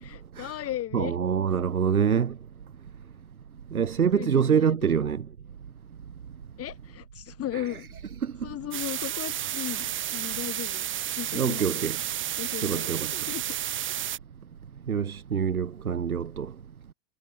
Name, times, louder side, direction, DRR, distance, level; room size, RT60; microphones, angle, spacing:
voice 1, 0.0-1.2 1.9-2.0 4.1-5.0 6.6-7.9 8.4-11.9 12.4-13.6, left 13 dB, 35° left, 5.4 m, -36 dB
voice 2, 0.9-2.4 3.7-5.3 7.5-7.8 8.2-8.5 9.7-9.8 11.3-12.0 12.6-13.1 14.9-16.5, right 7 dB, 80° right, 5.2 m, -26 dB
sound 1, 8.7-14.2, right 12 dB, 25° right, 2.0 m, -31 dB
figure-of-eight pair, 95°, 43 cm